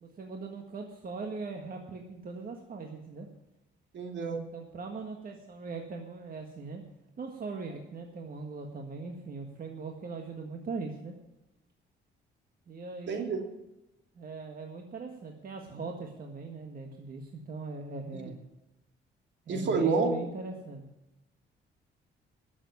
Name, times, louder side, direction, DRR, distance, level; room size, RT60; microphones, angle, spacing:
voice 1, 0.0-3.3 4.5-6.8 7.2-11.1 12.7-13.3 14.1-18.4 19.5-20.8, right 4 dB, 45° right, 3 dB, 1.6 m, -40 dB
voice 2, 3.9-4.4 13.1-13.4 19.5-20.1, right 4 dB, 65° right, 3 dB, 2.9 m, -28 dB
12.0 x 7.3 x 9.4 m, 0.93 s
cardioid pair, 90°, 20 cm